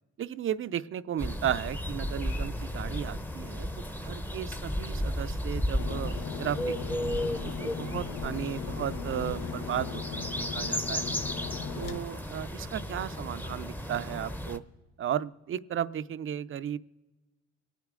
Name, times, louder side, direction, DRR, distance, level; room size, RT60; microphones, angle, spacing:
voice 1, 0.2-3.7 4.0-7.0 7.4-11.1 11.7-14.6 15.0-16.8, right 10 dB, 45° right, 14 dB, 0.5 m, -35 dB
sound 1, 1.2-14.6, equal, 5° left, 0.8 m, -34 dB
sound 2, 5.8-12.0, left 7 dB, 80° left, 0.9 m, -38 dB
25.0 x 9.5 x 3.7 m, 1.2 s
cardioid pair, 90°, 30 cm